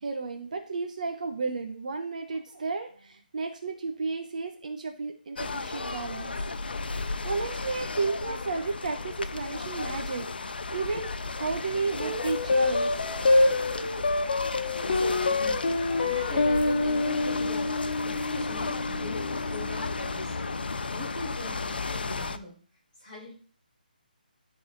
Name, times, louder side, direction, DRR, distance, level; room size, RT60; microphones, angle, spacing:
voice 1, 0.0-6.4 7.2-10.3 10.7-11.1 11.4-12.9, right 4 dB, 50° right, 5 dB, 1.0 m, -32 dB
sound 1, 5.4-22.4, left 4 dB, 80° left, 0.7 m, -34 dB
sound 2, 12.0-20.6, left 2 dB, 50° left, 1.4 m, -27 dB
voice 2, 14.4-22.6 23.0-23.3, left 1 dB, 10° left, -11 dB, 4.2 m, -42 dB
12.5 x 4.2 x 4.0 m, 0.41 s
hypercardioid pair, 170°, 5 cm